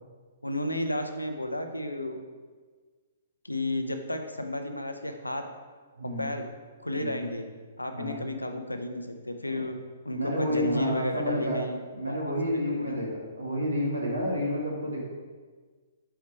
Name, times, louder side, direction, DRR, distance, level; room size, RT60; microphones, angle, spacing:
voice 1, 0.4-2.2 3.4-5.4 6.2-6.4 6.8-7.4 7.8-9.7 10.0-11.8 12.1-12.3 12.7-13.0, left 1 dB, 90° left, 6 dB, 0.6 m, -32 dB
voice 2, 6.0-6.3 7.0-7.2 7.9-8.2 10.1-11.6 11.9-13.1 13.4-15.0, equal, 75° right, -3 dB, 1.8 m, -29 dB
4.7 x 4.4 x 4.6 m, 1.5 s
figure-of-eight pair, 120°, 0 cm